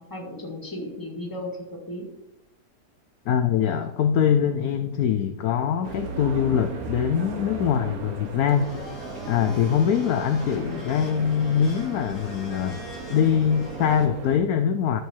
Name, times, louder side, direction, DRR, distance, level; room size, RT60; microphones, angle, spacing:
voice 1, 0.0-2.1, left 1 dB, 10° left, 0 dB, 1.9 m, -35 dB
voice 2, 3.3-8.7 9.3-12.8 13.1-15.0, left 8 dB, 70° left, 8 dB, 1.0 m, -23 dB
sound 1, 5.8-14.4, right 4 dB, 60° right, 1.4 m, -37 dB
Domestic sounds home sounds, 8.5-14.1, left 3 dB, 50° left, 1.8 m, -43 dB
12.5 x 5.3 x 4.4 m, 0.90 s
omnidirectional pair, 1.8 m